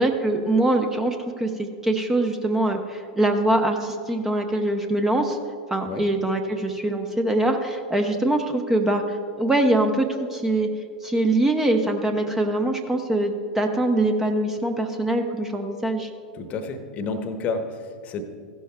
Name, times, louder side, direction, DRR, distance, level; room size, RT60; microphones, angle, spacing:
voice 1, 0.0-5.4 5.7-10.7 11.0-16.1, right 1 dB, 10° right, 5 dB, 0.7 m, -23 dB
voice 2, 16.3-18.2, left 4 dB, 35° left, 8 dB, 1.0 m, -30 dB
15.5 x 12.0 x 2.3 m, 2.1 s
figure-of-eight pair, 90°, 4 cm